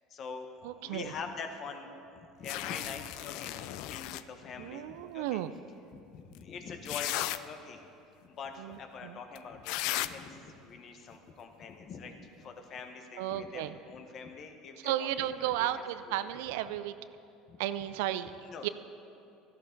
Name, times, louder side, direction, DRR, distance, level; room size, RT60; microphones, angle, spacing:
voice 1, 0.1-1.9 2.4-5.4 5.9-7.8 8.2-16.6 17.5-17.6 18.4-18.7, left 5 dB, 50° left, 6 dB, 1.2 m, -44 dB
voice 2, 0.6-1.1 4.6-5.5 8.6-9.2 13.2-13.7 14.8-16.9 17.6-18.3 18.6-18.7, right 13 dB, 75° right, 13 dB, 0.4 m, -34 dB
sound 1, 2.4-4.2 6.3-6.4 6.9-7.4 9.4-9.5 9.6-10.1, left 16 dB, 70° left, 0.3 m, -35 dB
13.5 x 11.5 x 4.0 m, 2.7 s
hypercardioid pair, 75°, 0 cm